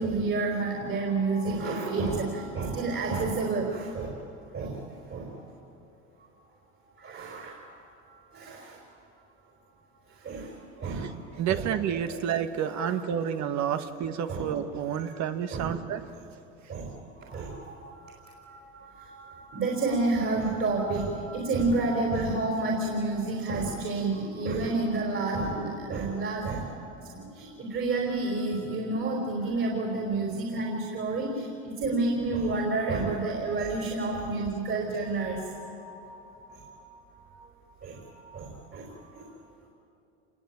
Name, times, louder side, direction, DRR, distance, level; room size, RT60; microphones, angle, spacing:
voice 1, 0.0-4.1 4.5-4.8 5.1-5.3 6.2-6.3 7.0-7.7 8.1-8.8 10.1-10.5 10.8-11.1 11.5-11.6 12.1-12.2 12.6-12.9 14.3-14.4 15.0-15.2 15.5-15.7 16.7-37.3 37.8-39.3, right 3 dB, 40° right, 0 dB, 4.8 m, -30 dB
voice 2, 10.8-11.1 11.4-16.0, right 9 dB, 55° right, 8 dB, 1.8 m, -30 dB
27.5 x 20.5 x 9.0 m, 2.8 s
supercardioid pair, 90°, 33 cm